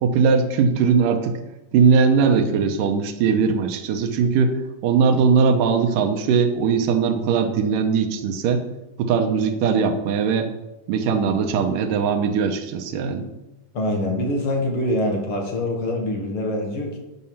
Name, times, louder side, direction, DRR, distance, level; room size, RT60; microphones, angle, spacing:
voice 1, 0.0-1.4 1.7-8.7 9.0-10.5 10.9-13.3, right 5 dB, 90° right, 4 dB, 2.6 m, -20 dB
voice 2, 13.7-17.0, left 1 dB, 50° left, 1 dB, 2.2 m, -24 dB
11.0 x 5.6 x 7.1 m, 0.97 s
omnidirectional pair, 3.8 m